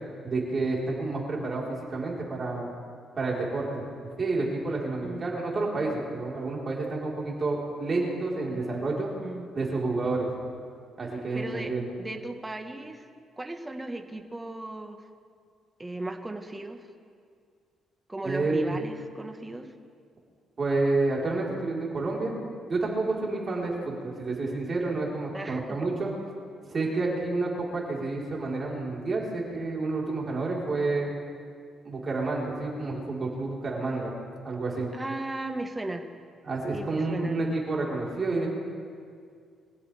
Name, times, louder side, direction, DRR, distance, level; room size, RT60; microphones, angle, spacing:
voice 1, 0.2-1.6 1.9-2.7 3.2-3.8 4.2-9.1 9.5-10.3 11.0-11.9 18.2-18.8 20.6-22.3 22.7-26.1 26.7-31.1 31.8-34.1 34.4-34.9 36.4-38.5, right 3 dB, 40° right, -3 dB, 4.3 m, -29 dB
voice 2, 11.3-13.0 13.4-15.0 15.8-16.9 18.1-19.7 25.3-25.9 34.9-36.1 36.7-37.4, right 2 dB, 15° right, 5 dB, 1.5 m, -36 dB
24.0 x 16.0 x 3.5 m, 2.2 s
cardioid pair, 90°, 0 cm